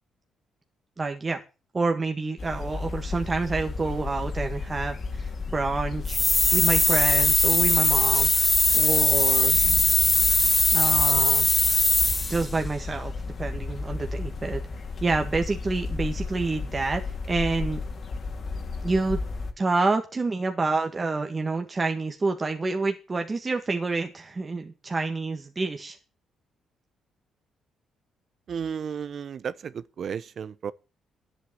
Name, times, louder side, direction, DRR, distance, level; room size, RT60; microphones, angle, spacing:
voice 1, 1.0-1.4 1.7-6.2 6.5-8.3 8.7-9.6 10.7-11.5 12.3-13.1 13.4-14.6 15.0-17.8 18.8-19.2 19.6-26.0, right 3 dB, 30° right, 1.8 m, -28 dB
sound 1, 2.4-19.5, left 4 dB, 45° left, 2.7 m, -33 dB
sound 2, 6.1-12.5, left 2 dB, 15° left, 0.5 m, -20 dB
voice 2, 28.5-29.7 30.0-30.7, right 7 dB, 55° right, 0.8 m, -33 dB
10.5 x 8.3 x 6.4 m
cardioid pair, 90°, 0 cm